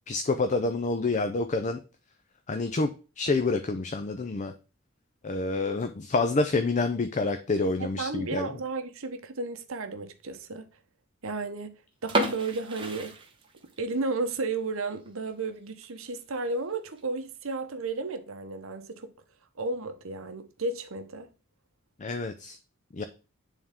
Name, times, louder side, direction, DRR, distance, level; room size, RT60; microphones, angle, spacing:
voice 1, 0.1-1.8 2.5-2.9 3.2-4.5 5.2-8.5 22.0-22.6 22.9-23.0, left 3 dB, 35° left, 0.5 m, -27 dB
voice 2, 7.8-10.7 11.2-11.7 12.0-13.2 13.8-19.1 19.6-21.3, right 3 dB, 65° right, 0.9 m, -33 dB
sound 1, 12.0-13.9 14.3-14.4 14.9-15.1 15.5-15.6 15.8-15.9 16.7-17.0, right 1 dB, 25° right, 1.1 m, -31 dB
9.6 x 3.6 x 3.6 m
head